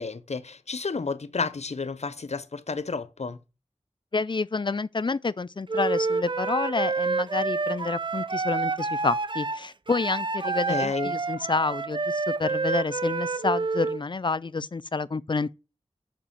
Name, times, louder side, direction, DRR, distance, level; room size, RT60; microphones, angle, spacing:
voice 1, 0.0-3.4 10.7-11.2, left 4 dB, 70° left, 0.7 m, -31 dB
voice 2, 4.1-15.5, left 4 dB, 45° left, 0.4 m, -29 dB
Wind instrument woodwind instrument, 5.7-14.0, right 4 dB, 45° right, 0.5 m, -28 dB
6.7 x 5.5 x 7.1 m
wide cardioid pair, 65°, 12 cm